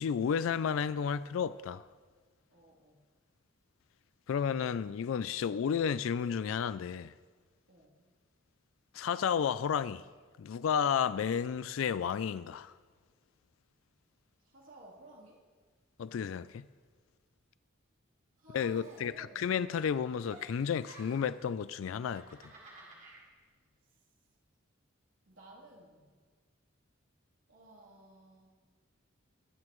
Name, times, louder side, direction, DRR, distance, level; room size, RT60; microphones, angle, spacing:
voice 1, 0.0-1.8 4.3-7.1 8.9-10.0 10.4-12.7 16.0-16.6 18.5-22.2, left 7 dB, 80° left, 0.3 m, -32 dB
voice 2, 2.5-3.0 7.7-7.9 14.4-15.4 18.4-19.5 25.3-26.1 27.5-28.5, right 1 dB, 70° right, 3.3 m, -55 dB
Giggle, 18.8-19.7 19.9-21.4 22.0-23.2, right 2 dB, 40° right, 3.9 m, -54 dB
22.5 x 9.6 x 3.1 m
head